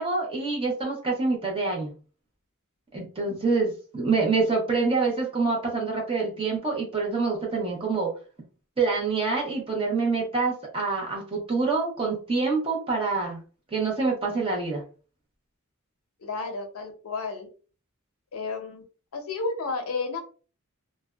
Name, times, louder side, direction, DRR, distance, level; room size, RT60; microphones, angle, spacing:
voice 1, 0.0-1.9 2.9-8.1 8.8-13.4 13.7-14.8, right 4 dB, 25° right, -2 dB, 0.8 m, -26 dB
voice 2, 16.2-17.5 18.3-18.8 19.1-20.2, left 4 dB, 85° left, 5 dB, 0.6 m, -32 dB
2.5 x 2.1 x 2.3 m, 0.37 s
head